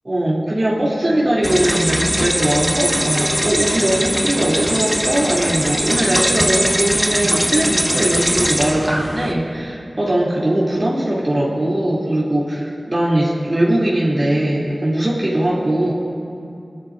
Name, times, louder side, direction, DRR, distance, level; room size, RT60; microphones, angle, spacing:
voice 1, 0.0-15.9, right 1 dB, 45° right, -7 dB, 2.8 m, -20 dB
sound 1, 1.4-9.3, equal, 5° right, 1.0 m, -20 dB
26.0 x 12.5 x 2.6 m, 2.5 s
wide cardioid pair, 50°, 0 cm